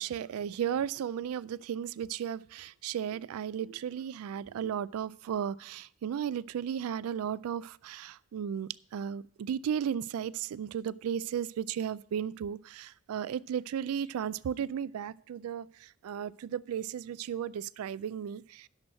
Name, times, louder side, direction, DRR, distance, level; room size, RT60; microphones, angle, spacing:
voice 1, 0.0-18.7, right 8 dB, 80° right, 20 dB, 0.3 m, -35 dB
10.5 x 6.2 x 6.3 m, 0.63 s
head